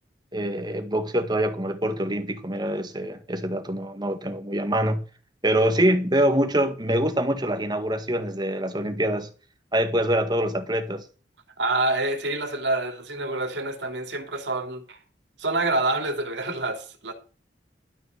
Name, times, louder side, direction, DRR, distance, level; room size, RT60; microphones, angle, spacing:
voice 1, 0.3-5.0 5.4-9.3 9.7-11.1, right 1 dB, 25° right, 1.8 m, -25 dB
voice 2, 11.6-15.0 15.4-17.1, right 2 dB, 90° right, 2.8 m, -27 dB
12.5 x 6.0 x 6.6 m
head